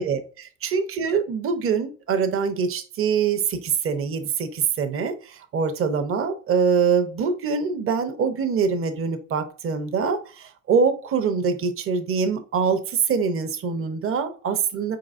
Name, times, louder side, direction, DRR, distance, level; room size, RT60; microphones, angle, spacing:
voice 1, 0.0-15.0, right 6 dB, 45° right, 0.8 m, -24 dB
4.7 x 3.9 x 2.5 m
cardioid pair, 105°, 30 cm